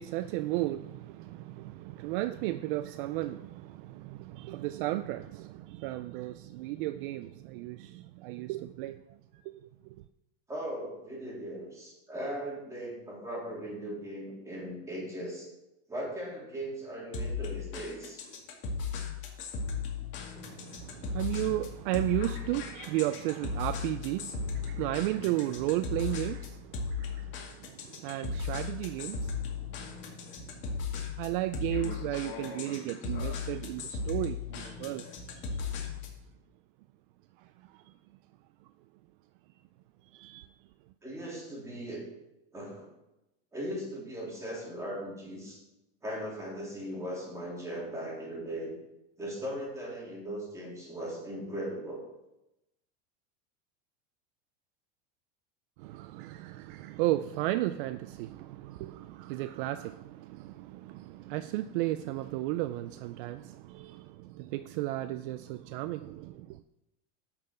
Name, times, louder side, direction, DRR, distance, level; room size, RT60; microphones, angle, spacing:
voice 1, 0.0-9.0 9.4-10.0 20.4-30.0 31.2-35.1 37.4-37.9 40.1-40.5 55.8-66.6, right 16 dB, 55° right, 0.4 m, -34 dB
voice 2, 10.5-15.5 15.9-18.2 41.0-42.1 42.5-42.9 43.5-45.6 46.0-48.7 49.2-52.1, right 1 dB, 10° right, 3.4 m, -38 dB
sound 1, 17.1-36.2, left 5 dB, 35° left, 2.2 m, -36 dB
10.5 x 6.0 x 6.6 m
supercardioid pair, 155°, 31 cm